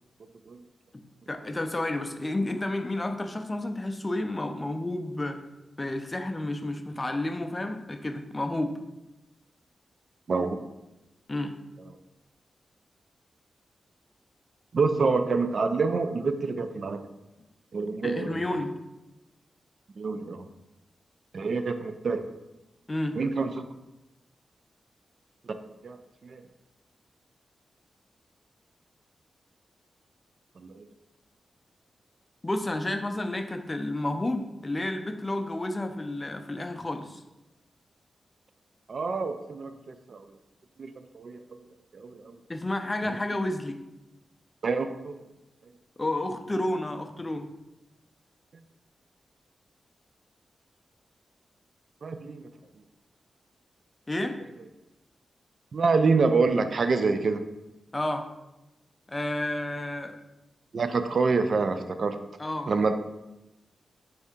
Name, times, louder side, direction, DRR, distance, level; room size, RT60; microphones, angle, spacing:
voice 1, 0.9-5.4 5.8-8.8 11.3-11.5 18.0-18.7 22.9-23.2 32.4-37.2 42.5-43.8 46.0-47.5 54.1-54.4 57.9-58.3 59.1-60.2 62.4-62.7, left 1 dB, 25° left, 6 dB, 0.4 m, -31 dB
voice 2, 14.7-17.1 17.7-18.4 20.0-20.4 21.3-22.2 23.1-23.5 25.5-25.6 25.8-26.0 26.2-26.4 30.6-30.9 38.9-40.2 40.8-41.4 41.9-42.4 44.6-45.2 48.5-48.6 52.0-52.5 55.7-57.4 60.7-62.2 62.7-62.9, right 4 dB, 60° right, 8 dB, 0.3 m, -26 dB
4.3 x 2.7 x 3.5 m, 0.96 s
cardioid pair, 80°, 0 cm